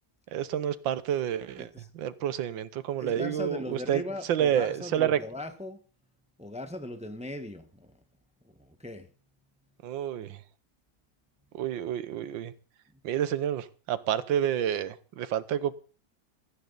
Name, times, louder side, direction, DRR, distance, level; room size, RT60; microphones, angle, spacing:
voice 1, 0.3-1.7 1.9-4.0 4.3-5.2 9.8-10.4 11.5-12.5 13.0-15.8, right 10 dB, 85° right, 1.6 m, -29 dB
voice 2, 3.0-5.8 6.4-8.0 8.4-9.1 12.9-13.0, left 1 dB, 5° right, 1.1 m, -39 dB
17.0 x 14.0 x 4.0 m
omnidirectional pair, 2.0 m